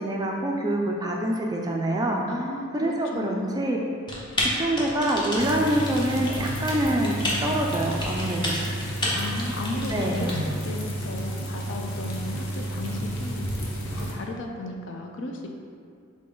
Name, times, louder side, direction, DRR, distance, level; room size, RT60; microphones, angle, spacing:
voice 1, 0.0-2.2 2.7-3.8 4.4-8.6 9.9-10.3, right 1 dB, 20° right, 0 dB, 0.3 m, -26 dB
voice 2, 2.3-3.7 9.1-13.5 14.0-15.5, left 2 dB, 60° left, 2 dB, 0.5 m, -35 dB
Typing, 4.1-10.3, left 1 dB, 20° left, 0.7 m, -31 dB
sound 1, 5.4-14.1, right 1 dB, 90° left, 0.8 m, -31 dB
3.8 x 3.7 x 3.7 m, 2.3 s
head